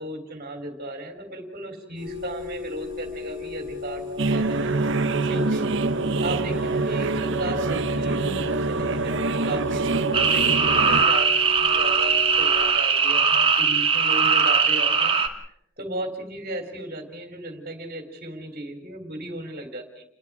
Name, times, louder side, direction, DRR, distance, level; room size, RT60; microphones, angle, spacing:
voice 1, 0.0-5.7 6.2-15.2 15.4-20.0, right 1 dB, 45° right, 4 dB, 3.5 m, -35 dB
sound 1, 2.0-12.7, left 5 dB, 40° left, 7.2 m, -36 dB
sound 2, 4.2-11.0, right 3 dB, 65° right, 1.1 m, -25 dB
sound 3, 10.1-15.3, right 5 dB, 25° right, 2.1 m, -20 dB
29.0 x 22.0 x 4.9 m, 0.76 s
head